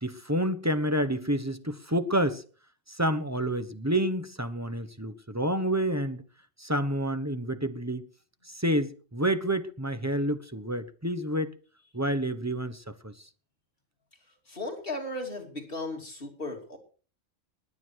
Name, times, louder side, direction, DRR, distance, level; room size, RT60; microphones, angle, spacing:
voice 1, 0.0-2.4 2.9-6.2 6.6-8.1 8.4-11.5 11.9-13.1, right 1 dB, 15° right, 1.0 m, -29 dB
voice 2, 14.5-16.8, left 2 dB, 45° left, 3.1 m, -36 dB
20.0 x 9.6 x 4.7 m
omnidirectional pair, 1.3 m